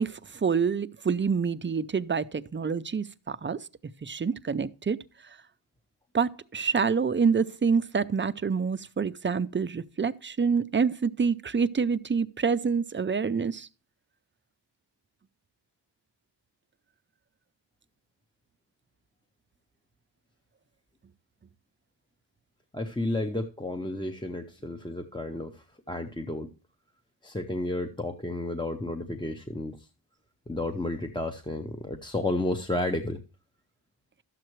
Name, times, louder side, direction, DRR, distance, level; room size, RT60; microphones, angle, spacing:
voice 1, 0.0-3.6 4.0-5.0 6.1-13.7, right 5 dB, 30° right, 0.4 m, -27 dB
voice 2, 22.7-26.5 27.2-29.9 30.5-33.2, left 2 dB, 10° left, 0.7 m, -32 dB
12.5 x 7.6 x 3.0 m
wide cardioid pair, 110°, 43 cm